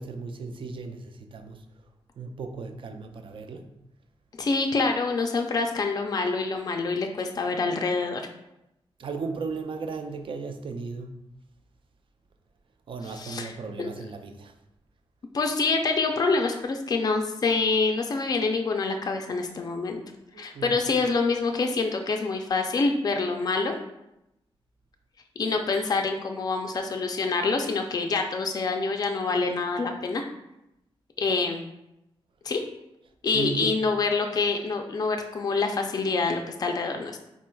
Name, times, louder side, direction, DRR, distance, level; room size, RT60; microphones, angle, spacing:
voice 1, 0.0-1.6 2.2-3.7 9.0-11.2 12.9-14.5 20.3-20.8 33.3-33.8, right 4 dB, 60° right, 6 dB, 0.4 m, -35 dB
voice 2, 4.4-8.3 13.1-13.5 13.8-13.9 15.3-20.0 20.4-23.8 25.4-30.2 31.2-31.6 32.4-32.6 33.2-37.2, left 4 dB, 40° left, 4 dB, 0.4 m, -26 dB
4.4 x 4.2 x 2.2 m, 0.87 s
wide cardioid pair, 155°, 10 cm